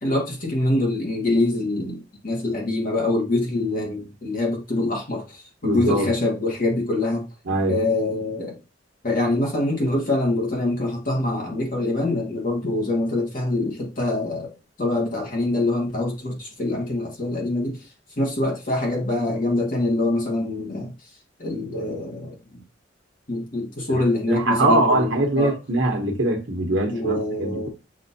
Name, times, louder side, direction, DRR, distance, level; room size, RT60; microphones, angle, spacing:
voice 1, 0.0-7.2 7.7-8.6 9.0-14.5 14.8-17.9 18.2-21.1 21.4-22.6 23.3-25.1 25.4-25.5 26.9-27.7, left 2 dB, 45° left, 1.2 m, -24 dB
voice 2, 5.6-6.1 7.5-7.8 23.9-27.7, right 2 dB, 70° right, 1.1 m, -22 dB
7.5 x 2.5 x 2.6 m
head